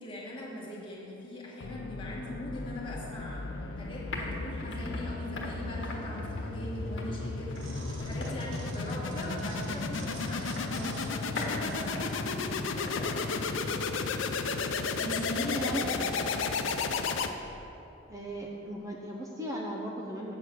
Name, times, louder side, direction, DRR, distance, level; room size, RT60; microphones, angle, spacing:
voice 1, 0.0-7.6 8.0-11.3 11.6-13.8 15.0-15.9 16.2-16.6, equal, 25° left, -5 dB, 1.9 m, -41 dB
sound 1, 1.6-17.7, left 4 dB, 90° left, 0.6 m, -34 dB
sound 2, 3.3-14.8, left 2 dB, 65° left, 1.4 m, -43 dB
sound 3, 7.5-13.0 13.6-13.7, right 1 dB, 90° right, 1.1 m, -46 dB
voice 2, 15.6-16.2 18.1-20.3, equal, 15° right, -3 dB, 0.8 m, -37 dB
8.3 x 7.1 x 6.2 m, 3.0 s
head